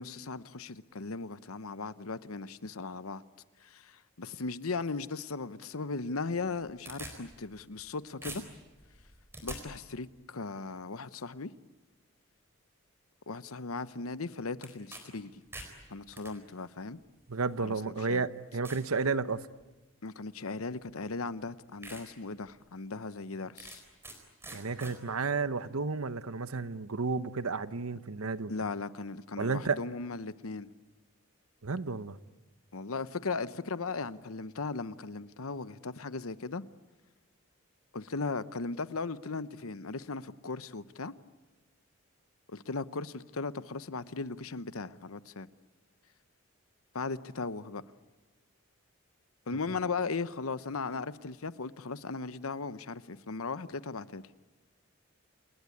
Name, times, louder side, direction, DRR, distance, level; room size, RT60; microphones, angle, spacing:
voice 1, 0.0-3.2 3.6-8.4 9.4-11.5 13.3-15.4 15.9-17.0 17.6-18.2 20.0-23.8 28.5-30.7 32.7-36.6 37.9-41.1 42.5-45.5 46.9-47.8 49.5-54.2, left 4 dB, 85° left, 0.9 m, -37 dB
sound 1, 6.4-7.9 8.2-9.6 14.6-15.0 15.3-16.3 17.2-17.3 17.9-18.0 18.6-18.9 19.4-19.7 20.9-21.0 21.4-21.5 21.8-22.0 22.5-22.6 23.6-24.2 24.4-24.9, right 2 dB, 10° right, 4.2 m, -45 dB
voice 2, 17.3-19.4 24.5-28.5 29.4-29.8 31.6-32.2, right 4 dB, 85° right, 1.0 m, -32 dB
28.5 x 21.0 x 9.6 m
head